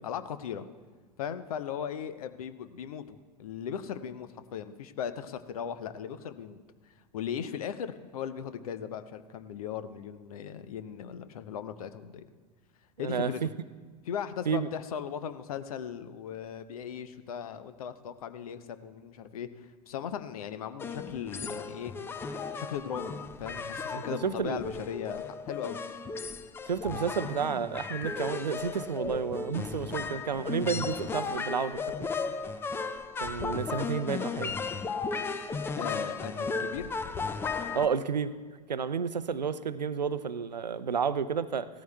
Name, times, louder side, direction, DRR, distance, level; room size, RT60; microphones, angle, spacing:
voice 1, 0.0-0.6 1.2-6.6 7.1-12.2 13.0-13.4 14.1-19.5 19.9-21.9 22.6-25.8 35.8-36.9, left 8 dB, 60° left, 12 dB, 0.7 m, -38 dB
voice 2, 13.0-13.5 14.5-14.7 24.1-24.6 26.7-31.8 33.2-34.5 37.7-38.3 38.7-41.7, right 6 dB, 80° right, 14 dB, 0.5 m, -31 dB
sound 1, 20.8-37.9, left 4 dB, 10° left, 0.4 m, -35 dB
17.5 x 14.0 x 2.3 m, 1.5 s
figure-of-eight pair, 90°, 21 cm